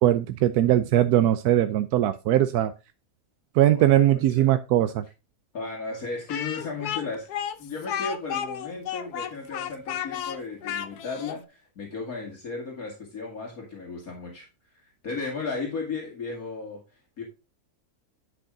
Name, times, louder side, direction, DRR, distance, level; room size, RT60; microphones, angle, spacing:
voice 1, 0.0-2.7 3.5-5.0, right 12 dB, 80° right, 11 dB, 1.1 m, -20 dB
voice 2, 3.6-4.5 5.5-7.3 7.6-14.5 15.0-17.2, left 4 dB, 65° left, -1 dB, 2.6 m, -35 dB
Speech, 6.3-11.4, left 9 dB, 80° left, 1.3 m, -32 dB
10.0 x 6.2 x 3.7 m, 0.29 s
omnidirectional pair, 1.6 m